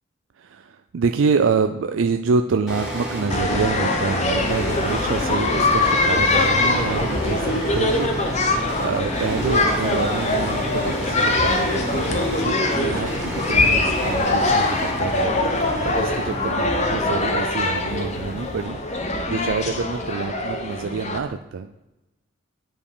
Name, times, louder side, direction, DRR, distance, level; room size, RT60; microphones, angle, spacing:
voice 1, 0.4-15.5 15.8-21.8, right 5 dB, 75° right, 7 dB, 0.4 m, -27 dB
sound 1, 2.7-18.6, equal, 5° right, 2.6 m, -32 dB
sound 2, 3.3-21.2, left 2 dB, 35° left, 1.0 m, -23 dB
sound 3, 4.2-20.2, left 2 dB, 75° left, 0.7 m, -37 dB
9.2 x 5.2 x 4.9 m, 0.96 s
head